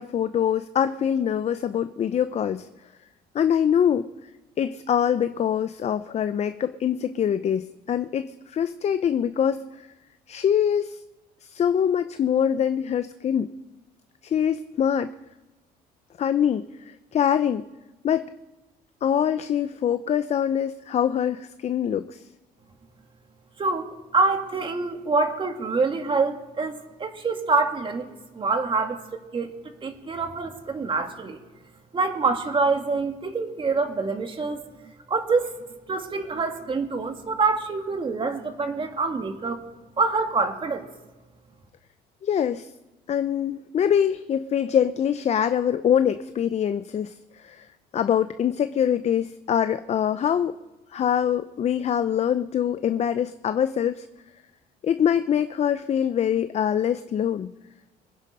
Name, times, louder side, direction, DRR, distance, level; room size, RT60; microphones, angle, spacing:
voice 1, 0.0-2.7 3.3-4.1 4.6-9.7 10.3-11.0 11.4-13.5 14.2-15.1 16.2-17.7 18.0-18.3 19.0-22.2 42.2-42.7 43.1-47.7 47.9-50.6 50.9-54.1 54.8-57.5, left 9 dB, 40° left, 11 dB, 0.5 m, -24 dB
voice 2, 23.6-28.1 28.3-29.6 29.8-31.4 31.9-34.6 35.1-35.5 35.9-39.6 40.0-40.9, right 4 dB, 30° right, 5 dB, 2.2 m, -26 dB
24.5 x 9.6 x 5.4 m, 1.1 s
cardioid pair, 110°, 17 cm